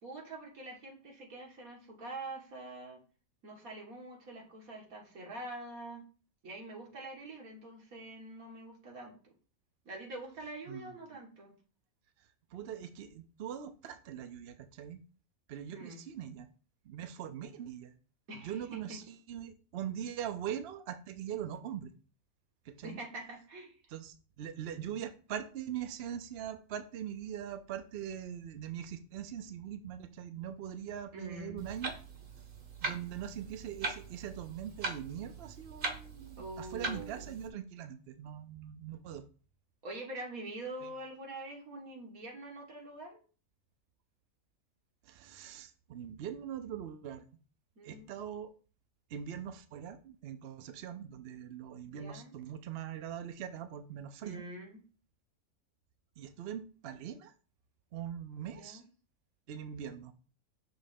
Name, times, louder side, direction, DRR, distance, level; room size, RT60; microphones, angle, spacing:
voice 1, 0.0-3.0 3.4-6.0 6.4-9.3 9.9-11.6 15.7-16.0 18.3-19.0 22.8-23.8 31.1-31.6 36.4-37.4 39.8-43.2 47.8-48.1 51.9-52.4 54.2-54.8 58.4-58.8, right 2 dB, 85° right, 2.1 m, -45 dB
voice 2, 12.5-15.0 15.5-16.5 16.8-18.0 18.4-21.9 22.6-23.0 23.9-32.0 32.8-39.3 40.8-40.9 45.0-47.2 47.8-48.5 49.1-54.4 56.2-57.3 57.9-58.8 59.5-60.1, right 9 dB, 60° right, 0.7 m, -42 dB
Clock, 31.6-37.5, right 3 dB, 45° right, 1.0 m, -41 dB
6.2 x 3.2 x 5.1 m
omnidirectional pair, 1.4 m